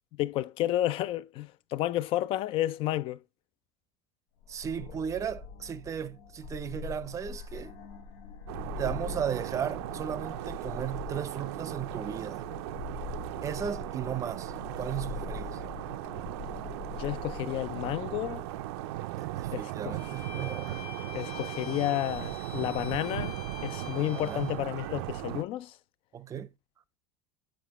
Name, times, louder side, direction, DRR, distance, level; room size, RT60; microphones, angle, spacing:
voice 1, 0.1-3.2 16.9-18.4 19.5-20.0 21.1-25.8, left 14 dB, 40° left, 0.4 m, -31 dB
sound 1, 4.4-19.0, left 5 dB, 90° left, 1.3 m, -43 dB
voice 2, 4.5-7.7 8.8-12.5 13.4-15.6 19.2-20.8 24.1-24.5 26.1-26.5, right 8 dB, 25° right, 0.6 m, -35 dB
sound 2, 8.5-25.4, right 16 dB, 90° right, 0.5 m, -38 dB
Bowed string instrument, 20.0-24.6, left 9 dB, 65° left, 1.5 m, -46 dB
7.8 x 5.1 x 3.0 m
cardioid pair, 150°, 13 cm